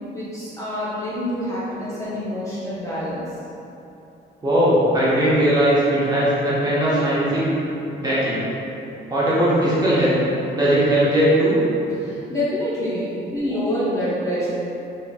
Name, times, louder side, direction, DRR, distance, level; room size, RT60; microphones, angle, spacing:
voice 1, 0.1-3.2 12.0-14.5, left 1 dB, 15° left, -11 dB, 0.9 m, -26 dB
voice 2, 4.4-7.4 8.0-8.4 9.1-10.1 10.5-11.6, right 1 dB, 20° right, -10 dB, 1.2 m, -19 dB
4.0 x 3.1 x 2.4 m, 2.9 s
cardioid pair, 90°, 20 cm